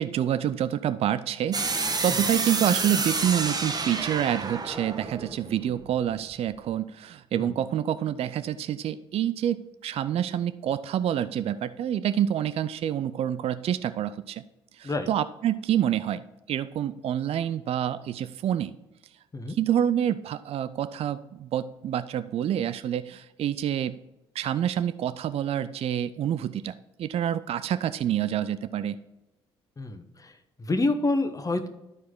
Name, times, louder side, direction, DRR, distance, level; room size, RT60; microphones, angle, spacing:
voice 1, 0.0-14.4 14.8-18.7 19.5-24.0 24.4-29.0, right 10 dB, 50° right, 13 dB, 0.4 m, -27 dB
sound 1, 1.5-6.4, right 3 dB, 30° right, 1.2 m, -29 dB
voice 2, 29.8-31.7, left 2 dB, 25° left, 8 dB, 1.2 m, -28 dB
12.5 x 4.7 x 3.8 m, 0.96 s
hypercardioid pair, 50°, 13 cm